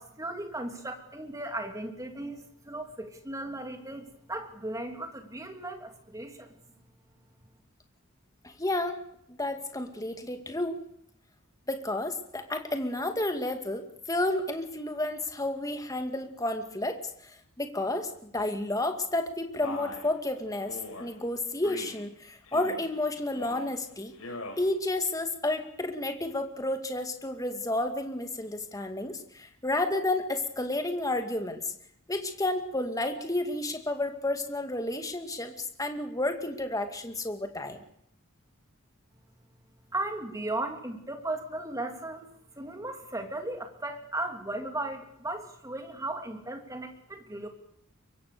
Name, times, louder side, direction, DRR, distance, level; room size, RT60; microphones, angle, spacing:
voice 1, 0.0-6.5 39.9-42.3 42.6-47.5, right 2 dB, 15° right, 5 dB, 3.1 m, -36 dB
voice 2, 8.4-9.0 9.3-10.8 11.7-24.1 24.6-31.7 32.1-37.8, left 2 dB, 15° left, 6 dB, 2.4 m, -31 dB
Male speech man speaking, 19.6-20.1 20.7-21.1 21.6-22.0 22.4-22.9 23.3-23.7 24.1-24.6, left 2 dB, 80° left, 5.6 m, -40 dB
23.5 x 23.5 x 6.9 m, 0.72 s
head